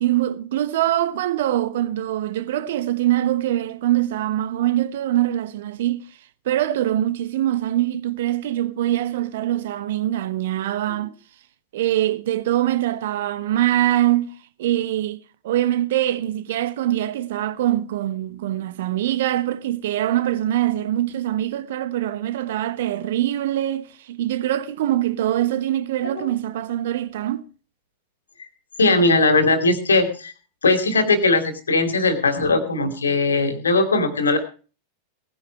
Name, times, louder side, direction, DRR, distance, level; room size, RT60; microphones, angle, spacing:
voice 1, 0.0-6.0 6.4-11.1 11.7-14.3 14.6-15.2 15.4-27.4, right 13 dB, 55° right, 1.1 m, -23 dB
voice 2, 28.8-30.3 30.6-34.4, left 3 dB, 70° left, 2.7 m, -19 dB
18.5 x 10.0 x 4.7 m
figure-of-eight pair, 90°, 0 cm